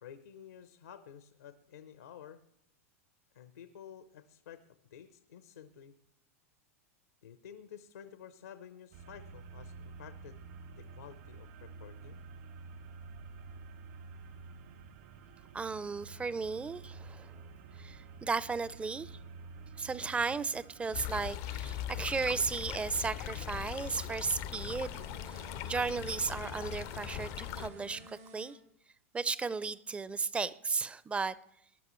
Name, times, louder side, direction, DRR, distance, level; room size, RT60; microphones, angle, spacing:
voice 1, 0.0-2.4 3.3-5.9 7.2-10.4 10.7-12.2, left 8 dB, 80° left, 10 dB, 0.8 m, -52 dB
sound 1, 8.9-28.1, right 5 dB, 65° right, 2.2 m, -51 dB
voice 2, 15.5-17.3 17.8-19.2 19.8-28.6 29.1-31.4, right 4 dB, 15° right, 18 dB, 0.5 m, -35 dB
sound 2, 20.9-27.7, left 14 dB, 50° left, 0.5 m, -40 dB
sound 3, 24.8-28.5, right 1 dB, 90° right, 6.0 m, -54 dB
20.5 x 11.0 x 3.1 m, 0.75 s
hypercardioid pair, 100°, 8 cm